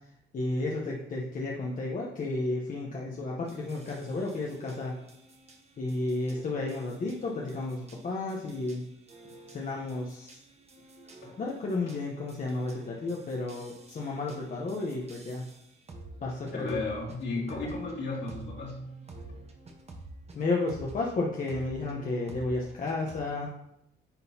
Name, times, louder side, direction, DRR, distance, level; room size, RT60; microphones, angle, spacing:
voice 1, 0.3-4.9 5.8-8.8 9.5-10.4 11.4-15.4 16.2-16.8 17.5-17.7 20.3-23.7, left 2 dB, 45° left, -2 dB, 0.9 m, -32 dB
sound 1, 3.5-21.1 21.5-23.2, right 2 dB, 30° right, 1.1 m, -50 dB
voice 2, 11.0-11.4 11.9-12.0 16.5-19.1, left 3 dB, 65° left, -4 dB, 2.4 m, -35 dB
9.7 x 3.9 x 2.8 m, 0.80 s
cardioid pair, 90°, 20 cm